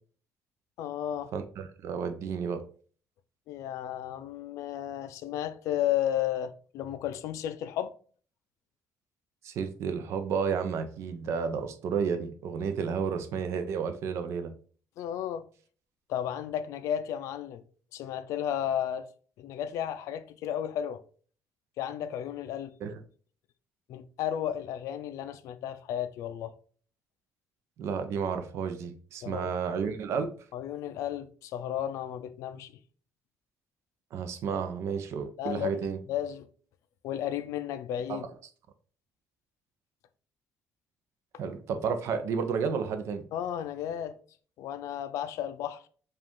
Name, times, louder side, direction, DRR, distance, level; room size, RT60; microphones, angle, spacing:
voice 1, 0.8-1.3 3.5-7.9 15.0-15.5 16.1-17.6 17.9-19.1 19.4-21.0 21.8-22.7 23.9-26.5 29.2-29.6 30.5-32.8 35.4-35.8 36.1-36.5 37.0-38.2 43.3-44.2 44.6-45.8, left 10 dB, 70° left, 0.4 m, -33 dB
voice 2, 1.3-2.6 9.4-14.5 22.8-23.0 27.8-30.3 34.1-36.0 38.1-38.3 41.4-43.2, right 6 dB, 55° right, 0.5 m, -31 dB
5.0 x 2.4 x 3.6 m
cardioid pair, 175°, 6 cm